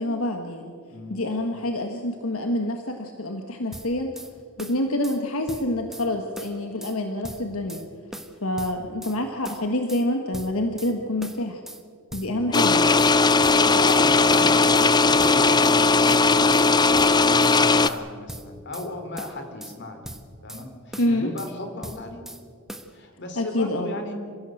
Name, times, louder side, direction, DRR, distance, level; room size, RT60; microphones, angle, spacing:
voice 1, 0.0-0.7 1.1-4.1 4.6-7.8 8.4-11.6 12.1-12.9 21.0-21.3 23.4-23.9, left 1 dB, 80° left, 4 dB, 1.6 m, -27 dB
voice 2, 0.9-1.3 12.2-12.8 13.2-20.1 20.4-22.3 22.9-24.1, left 2 dB, 55° left, 6 dB, 3.5 m, -36 dB
sound 1, 3.7-4.3 4.6-5.2 5.5-6.1 6.4-7.0 7.2-7.8 8.1-9.2 9.4-10.0 10.3-10.9 11.2-11.8 12.1-12.7 13.0-14.0 14.3-14.9 15.2-15.8 16.1-16.7 16.9-17.6 17.8-18.9 19.2-19.8 20.0-20.6 20.9-21.5 21.8-22.4 22.7-22.9, right 1 dB, ahead, 1.3 m, -39 dB
sound 2, 12.5-17.9, left 3 dB, 20° left, 0.6 m, -18 dB
27.5 x 16.0 x 7.8 m, 2.2 s
head